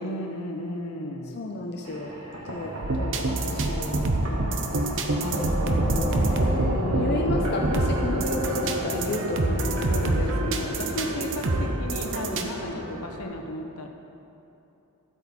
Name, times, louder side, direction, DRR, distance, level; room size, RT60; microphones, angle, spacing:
voice 1, 0.0-1.4 5.1-7.4 9.9-13.9, left 1 dB, 75° left, 3 dB, 1.0 m, -34 dB
voice 2, 1.4-2.1 2.4-4.8 6.1-10.2 10.6-10.7 12.6-12.8, left 2 dB, 45° left, 0 dB, 0.7 m, -33 dB
sound 1, 1.8-13.2, right 1 dB, 75° right, 1.6 m, -32 dB
sound 2, 2.8-12.4, right 2 dB, 60° right, 0.8 m, -26 dB
12.5 x 8.2 x 4.3 m, 2.9 s
head